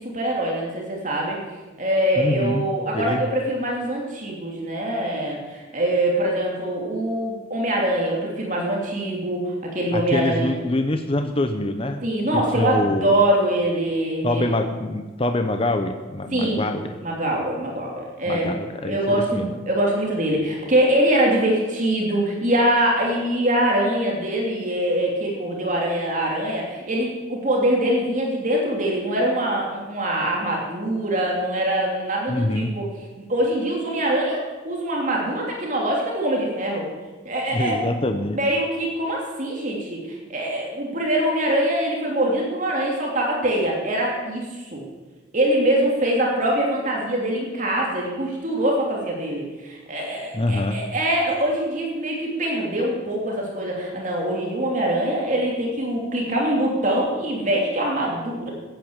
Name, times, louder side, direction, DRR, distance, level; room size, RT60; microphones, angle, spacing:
voice 1, 0.0-1.4 1.8-10.5 12.0-14.6 16.3-16.6 17.0-18.5 18.9-32.8 33.3-36.8 37.2-38.0 38.3-44.8 45.3-58.5, right 1 dB, 40° right, -2 dB, 2.9 m, -23 dB
voice 2, 2.2-3.3 9.9-13.2 14.2-16.9 18.3-19.5 32.3-32.8 37.5-38.4 50.3-50.8, left 1 dB, 30° left, 6 dB, 0.7 m, -25 dB
15.0 x 9.2 x 7.3 m, 1.3 s
head